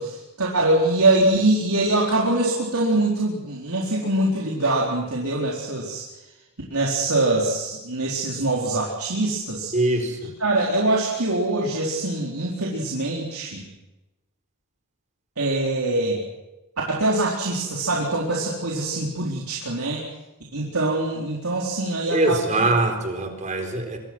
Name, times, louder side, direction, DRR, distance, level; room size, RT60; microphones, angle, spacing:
voice 1, 0.0-6.0 6.7-9.7 10.4-13.6 15.4-16.2 16.9-20.0 20.5-22.7, right 2 dB, 70° right, -3 dB, 4.2 m, -23 dB
voice 2, 9.7-10.3 22.1-24.0, right 2 dB, 35° right, 5 dB, 4.3 m, -23 dB
26.0 x 24.0 x 6.3 m, 1.0 s
head